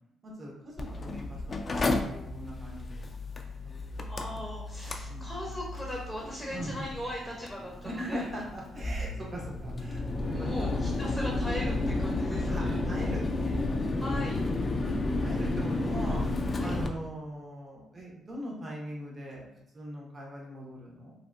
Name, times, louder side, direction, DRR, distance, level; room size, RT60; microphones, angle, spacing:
voice 1, 0.2-1.6 1.8-3.0 3.3-4.1 5.0-5.5 6.5-6.9 7.8-11.0 12.3-13.5 14.3-14.5 14.8-16.3 16.6-21.1, right 1 dB, 35° right, -2 dB, 0.8 m, -41 dB
Mechanical fan, 0.8-16.9, left 2 dB, 35° left, 0.3 m, -32 dB
voice 2, 4.1-8.2 10.3-12.7 14.0-14.4 16.6-16.8, equal, ahead, -3 dB, 0.6 m, -39 dB
3.4 x 2.1 x 2.4 m, 0.88 s
cardioid pair, 90°, 0 cm